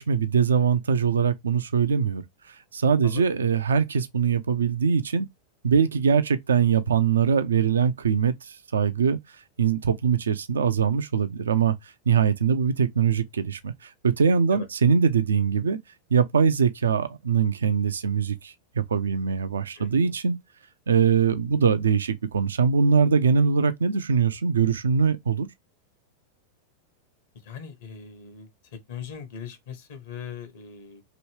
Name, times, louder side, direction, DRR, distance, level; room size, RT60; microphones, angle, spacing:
voice 1, 0.0-5.3 5.6-15.8 16.1-20.4 20.9-25.5, right 6 dB, 80° right, 0.3 m, -22 dB
voice 2, 19.8-20.1 27.4-28.5 28.9-31.0, left 7 dB, 65° left, 1.0 m, -40 dB
3.0 x 2.7 x 3.0 m
hypercardioid pair, 95°, 0 cm